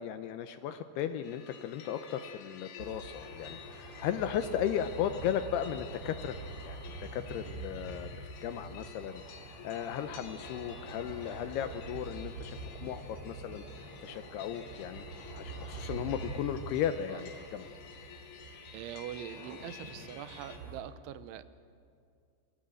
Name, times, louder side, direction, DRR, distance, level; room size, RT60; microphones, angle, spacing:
voice 1, 0.0-6.4 6.6-6.8 7.1-9.2 9.6-13.6 14.0-15.1 15.3-17.7, left 9 dB, 80° left, 10 dB, 2.4 m, -36 dB
sound 1, 1.2-20.6, left 7 dB, 60° left, 3.9 m, -51 dB
sound 2, 2.8-20.8, right 3 dB, 30° right, 5.1 m, -46 dB
voice 2, 17.1-17.5 18.7-21.4, right 12 dB, 90° right, 13 dB, 3.3 m, -44 dB
27.0 x 21.5 x 7.8 m, 2.3 s
omnidirectional pair, 5.3 m